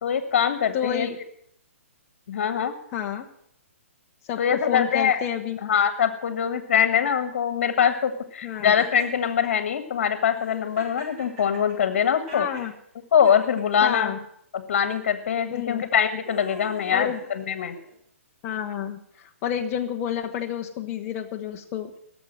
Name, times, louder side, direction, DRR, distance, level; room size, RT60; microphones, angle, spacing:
voice 1, 0.0-1.1 2.3-2.7 4.4-5.2 5.6-12.5 13.1-14.1 14.5-17.7, left 8 dB, 55° left, 9 dB, 1.6 m, -23 dB
voice 2, 0.7-1.2 2.9-3.3 4.3-5.6 8.4-8.7 12.3-12.7 13.8-14.2 15.5-15.9 16.9-17.2 18.4-21.9, left 9 dB, 30° left, 1 dB, 1.0 m, -29 dB
Laughter, 8.8-9.5 10.3-12.7 13.2-14.0 14.8-15.0 15.8-18.0, right 2 dB, 30° right, 4.8 m, -43 dB
17.0 x 7.1 x 7.6 m, 0.69 s
hypercardioid pair, 150°, 8 cm